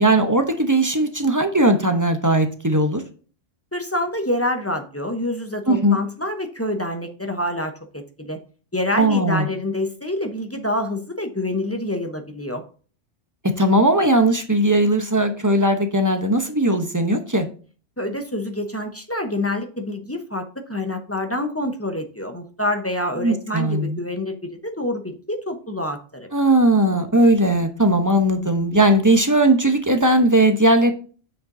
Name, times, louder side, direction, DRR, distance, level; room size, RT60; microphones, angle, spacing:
voice 1, 0.0-3.0 5.7-6.0 9.0-9.5 13.6-17.5 23.2-24.0 26.3-30.9, right 1 dB, 20° right, 6 dB, 0.8 m, -18 dB
voice 2, 3.7-8.4 8.7-12.6 18.0-26.3, left 1 dB, 15° left, 5 dB, 0.8 m, -27 dB
7.7 x 6.7 x 2.6 m, 0.39 s
omnidirectional pair, 1.2 m